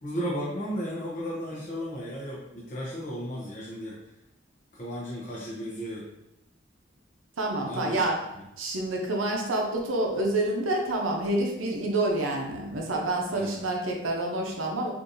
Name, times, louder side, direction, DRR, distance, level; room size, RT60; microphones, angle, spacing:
voice 1, 0.0-4.0 4.7-6.0 7.7-8.0 13.3-13.6, equal, 40° left, -7 dB, 0.6 m, -34 dB
voice 2, 7.4-8.2 8.6-14.9, right 2 dB, 85° right, 0 dB, 0.7 m, -28 dB
3.8 x 2.6 x 2.6 m, 0.87 s
head